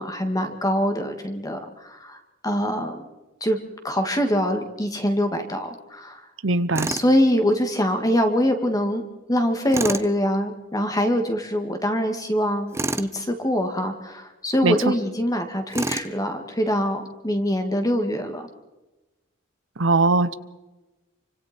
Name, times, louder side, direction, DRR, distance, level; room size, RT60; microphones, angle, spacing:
voice 1, 0.0-2.2 2.4-3.0 3.4-3.6 3.8-6.2 6.9-9.0 9.3-18.5, equal, 20° left, 6 dB, 2.3 m, -24 dB
voice 2, 6.4-6.9 14.6-14.8 19.8-20.3, right 3 dB, 65° right, 13 dB, 0.9 m, -20 dB
Tools, 6.8-7.1 9.7-10.1 12.7-13.1 15.7-16.1, right 2 dB, 15° right, 0.8 m, -27 dB
29.0 x 25.0 x 4.6 m, 1.1 s
head